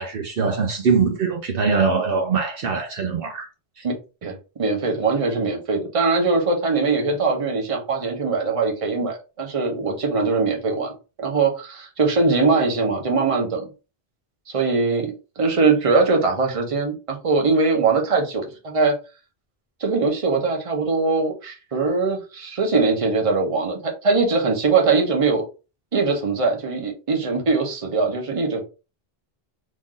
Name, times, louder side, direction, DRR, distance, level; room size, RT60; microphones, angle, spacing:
voice 1, 0.0-3.5 3.8-3.9, right 5 dB, 65° right, 0.8 m, -22 dB
voice 2, 4.2-10.9 11.2-13.7 14.5-18.9 19.8-25.4 25.9-28.6, right 4 dB, 35° right, 0.9 m, -21 dB
3.1 x 2.5 x 3.7 m
omnidirectional pair, 1.0 m